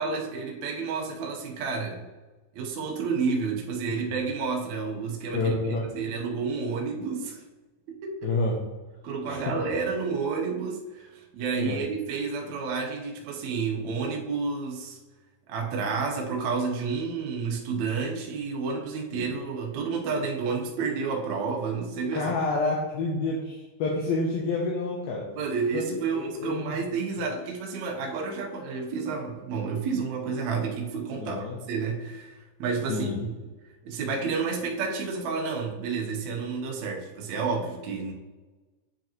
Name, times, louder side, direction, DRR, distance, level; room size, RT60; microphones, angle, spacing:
voice 1, 0.0-2.0 2.5-5.5 5.9-7.4 7.9-8.4 9.0-15.0 15.5-22.3 25.4-33.3 33.8-38.1, right 5 dB, 90° right, 0 dB, 1.5 m, -30 dB
voice 2, 5.3-5.9 8.2-8.6 9.3-9.4 11.5-11.8 19.1-19.2 22.1-25.2 25.7-26.8 31.2-31.6 32.9-33.2, left 3 dB, 75° left, -2 dB, 2.5 m, -28 dB
9.2 x 4.9 x 3.0 m, 1.2 s
omnidirectional pair, 4.7 m